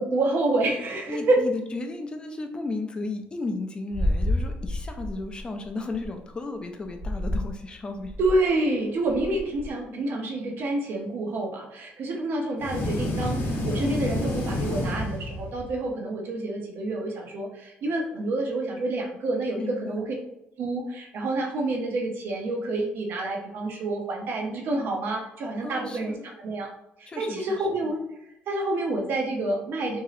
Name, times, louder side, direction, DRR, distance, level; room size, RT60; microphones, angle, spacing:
voice 1, 0.0-1.4 8.2-20.1 20.6-26.7 27.0-28.0 28.5-30.0, right 2 dB, 55° right, 1 dB, 0.7 m, -28 dB
voice 2, 1.1-8.1 19.5-20.1 25.6-26.3 27.1-27.6, left 3 dB, 20° left, 5 dB, 0.4 m, -34 dB
sound 1, 3.9-6.1 6.9-7.6 7.9-8.5 9.0-9.7, left 1 dB, 35° right, 0.9 m, -29 dB
sound 2, 12.6-15.8, left 1 dB, 65° left, 0.8 m, -29 dB
3.0 x 2.7 x 2.4 m, 0.85 s
cardioid pair, 140°, 4 cm